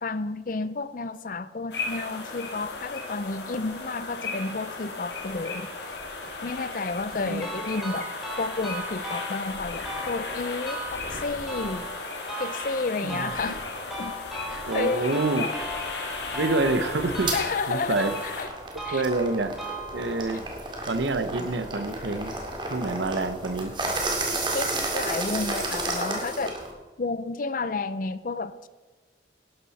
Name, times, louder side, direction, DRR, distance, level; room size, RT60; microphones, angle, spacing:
voice 1, 0.0-5.7 6.4-11.9 12.4-13.6 14.0-14.2 14.5-15.6 17.3-18.5 18.8-19.0 24.5-26.6 27.0-28.7, left 3 dB, 50° left, 0.6 m, -31 dB
sound 1, 1.7-18.5, left 3 dB, 70° left, 2.5 m, -35 dB
sound 2, 7.4-20.4, right 1 dB, ahead, 3.6 m, -38 dB
voice 2, 13.0-13.5 14.7-15.5 16.3-17.3 17.7-18.1 18.9-19.5 19.9-20.5 20.8-22.3 22.7-23.8, right 2 dB, 80° right, 0.9 m, -27 dB
sound 3, 17.3-17.4 17.9-26.7, right 2 dB, 25° right, 2.2 m, -31 dB
12.5 x 11.5 x 4.2 m
head